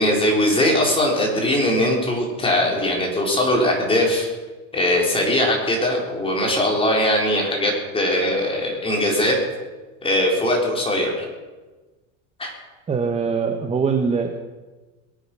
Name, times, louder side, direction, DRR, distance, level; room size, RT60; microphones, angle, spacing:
voice 1, 0.0-4.3 4.7-9.3 10.0-11.3 12.4-12.5, left 1 dB, 15° left, -1 dB, 4.2 m, -20 dB
voice 2, 12.9-14.3, right 5 dB, 15° right, 4 dB, 1.0 m, -22 dB
21.5 x 9.0 x 6.1 m, 1.2 s
supercardioid pair, 135°, 40 cm